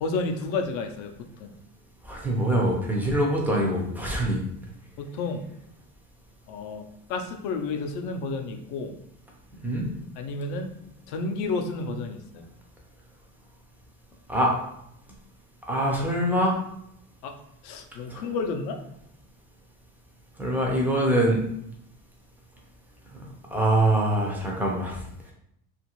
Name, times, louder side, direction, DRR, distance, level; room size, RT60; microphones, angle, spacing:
voice 1, 0.0-1.1 1.4-1.5 5.0-5.5 6.5-8.9 10.2-10.7 11.1-12.4 17.2-17.4 17.6-18.8, left 3 dB, 55° left, 5 dB, 0.5 m, -31 dB
voice 2, 2.1-4.4 9.6-9.9 14.3-14.5 15.7-16.5 18.1-18.2 20.4-21.4 23.5-25.0, right 1 dB, 5° right, -2 dB, 0.4 m, -24 dB
2.6 x 2.4 x 2.9 m, 0.74 s
cardioid pair, 140°, 38 cm